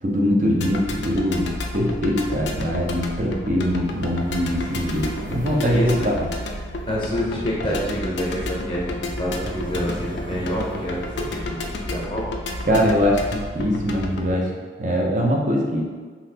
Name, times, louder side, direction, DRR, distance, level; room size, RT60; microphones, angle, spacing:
voice 1, 0.0-6.3 12.6-14.5 14.8-15.8, equal, 45° right, 0 dB, 0.6 m, -22 dB
sound 1, 0.6-14.3, left 1 dB, 75° left, 0.4 m, -31 dB
sound 2, 3.3-13.3, equal, 85° right, 1.2 m, -41 dB
voice 2, 5.5-6.1 6.9-12.3, equal, 30° left, -5 dB, 0.6 m, -27 dB
4.0 x 2.8 x 2.8 m, 1.5 s
head